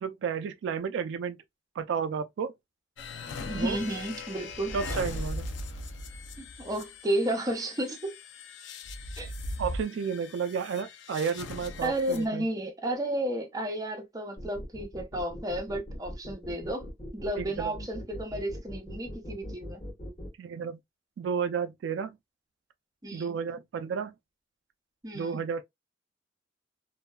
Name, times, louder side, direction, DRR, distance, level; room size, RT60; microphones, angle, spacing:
voice 1, 0.0-1.4 1.8-2.5 3.5-3.8 4.7-5.5 9.6-12.5 17.4-17.7 20.4-20.8 21.2-22.2 23.1-24.1 25.1-25.6, right 6 dB, 85° right, 0.3 m, -32 dB
sound 1, 3.0-12.2, left 2 dB, 80° left, 0.5 m, -39 dB
voice 2, 3.4-5.0 6.4-8.1 9.2-9.3 11.8-16.9 17.1-19.8 23.0-23.3 25.0-25.4, right 1 dB, 20° right, 0.7 m, -32 dB
sound 2, 14.4-20.3, equal, 30° left, 1.1 m, -40 dB
2.6 x 2.1 x 2.2 m
head